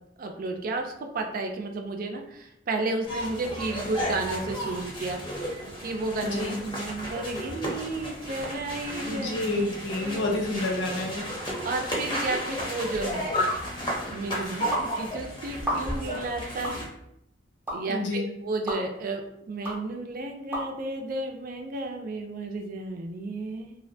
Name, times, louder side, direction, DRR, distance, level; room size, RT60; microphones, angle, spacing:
voice 1, 0.2-5.2 5.8-9.5 9.9-10.3 11.6-13.2 14.1-14.7 15.0-16.8 17.7-23.8, right 2 dB, 50° right, 4 dB, 0.4 m, -32 dB
sound 1, 3.0-16.9, equal, 25° left, 0.6 m, -33 dB
voice 2, 6.2-6.6 9.1-11.3 17.9-18.3, left 2 dB, 80° left, 1 dB, 0.5 m, -29 dB
sound 2, 14.7-14.9 15.6-16.1 16.6-16.8 17.7-17.8 18.7-18.8 19.6-19.8 20.5-20.6, equal, 10° right, 0.6 m, -30 dB
2.4 x 2.1 x 2.6 m, 0.80 s
head